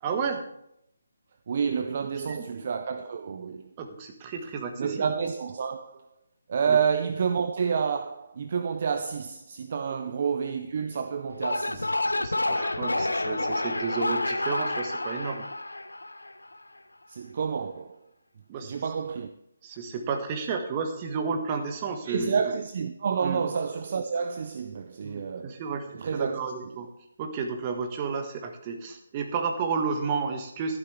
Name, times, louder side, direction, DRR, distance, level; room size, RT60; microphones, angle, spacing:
voice 1, 0.0-0.4 2.3-2.4 3.8-5.1 6.7-6.8 12.2-15.4 18.5-18.7 19.6-22.5 23.2-23.4 25.0-25.9 26.1-26.9 27.2-30.8, right 5 dB, 25° right, 1.4 m, -32 dB
voice 2, 1.5-3.7 4.8-6.1 6.5-11.9 17.1-18.0 18.6-19.3 22.0-25.6 25.9-26.4, right 6 dB, 45° right, 0.6 m, -29 dB
sound 1, 11.3-16.6, left 2 dB, 80° left, 0.6 m, -29 dB
12.5 x 11.0 x 3.4 m
figure-of-eight pair, 145°, 0 cm